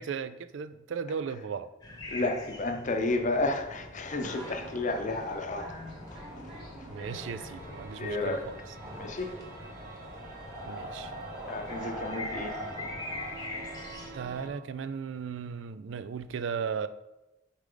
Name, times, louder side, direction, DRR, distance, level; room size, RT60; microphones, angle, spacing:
voice 1, 0.0-1.7 6.9-8.6 10.7-11.1 14.1-16.9, right 6 dB, 70° right, 13 dB, 0.4 m, -36 dB
sound 1, 1.8-14.1, left 2 dB, 20° left, 1.0 m, -45 dB
voice 2, 2.1-5.7 6.1-6.2 6.8-6.9 8.0-8.4 9.0-9.4 11.5-12.6, left 2 dB, 40° left, 5 dB, 0.7 m, -31 dB
sound 2, 4.1-13.9, equal, 30° right, 2.2 m, -43 dB
sound 3, 7.0-14.5, right 3 dB, 50° right, 1.2 m, -47 dB
6.5 x 4.9 x 3.8 m, 1.0 s
head